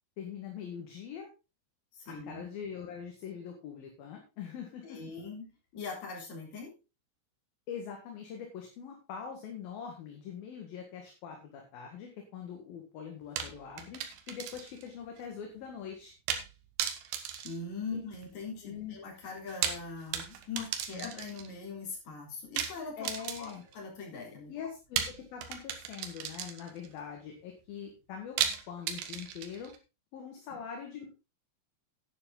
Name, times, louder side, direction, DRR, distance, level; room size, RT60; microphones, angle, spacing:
voice 1, 0.2-1.3 2.1-5.0 7.7-16.1 17.9-18.0 18.6-19.0 20.9-21.1 23.0-23.6 24.5-28.4 28.7-29.7 30.1-31.1, left 7 dB, 60° left, 2 dB, 3.1 m, -43 dB
voice 2, 1.9-2.5 4.8-6.7 17.4-23.1 23.4-24.5 30.5-30.6, left 4 dB, 40° left, 0 dB, 4.6 m, -41 dB
sound 1, 13.4-14.9 15.2-15.3 16.3-16.5 16.8-18.3 19.4-21.5 22.6-23.7 25.0-26.9 28.4-29.8, right 9 dB, 65° right, 3.0 m, -35 dB
11.0 x 9.9 x 3.8 m, 0.28 s
omnidirectional pair, 5.6 m